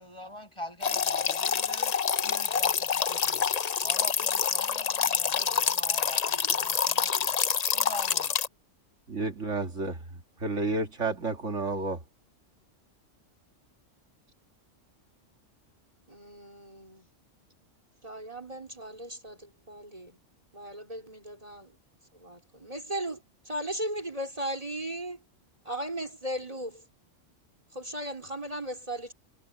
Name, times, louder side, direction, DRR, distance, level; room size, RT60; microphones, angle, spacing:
voice 1, 0.0-1.9 2.2-3.6 3.8-7.4 7.7-8.3, left 1 dB, 25° left, 6.2 m, -44 dB
sound 1, 0.8-8.5, left 7 dB, 45° left, 0.6 m, -27 dB
voice 2, 9.1-12.0, right 3 dB, 70° right, 2.6 m, -31 dB
voice 3, 16.1-17.1 18.0-20.2 20.5-21.7 22.1-23.2 23.5-25.2 25.7-26.8 27.7-29.1, right 1 dB, 30° right, 4.0 m, -37 dB
omnidirectional pair, 1.3 m